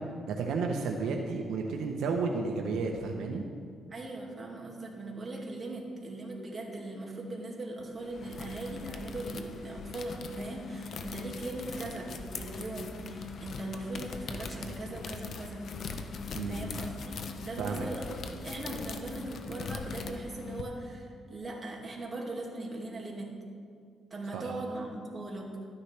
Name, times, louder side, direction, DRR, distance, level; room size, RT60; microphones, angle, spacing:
voice 1, 0.3-3.4 16.3-16.6 17.6-17.9 24.3-24.5, right 4 dB, 80° right, 2 dB, 0.8 m, -32 dB
voice 2, 3.9-15.7 16.5-23.3 24.1-25.7, right 2 dB, 30° right, -1 dB, 2.1 m, -39 dB
sound 1, 8.0-20.6, left 4 dB, 60° left, 0.8 m, -41 dB
12.5 x 9.7 x 3.3 m, 2.2 s
cardioid pair, 90°, 0 cm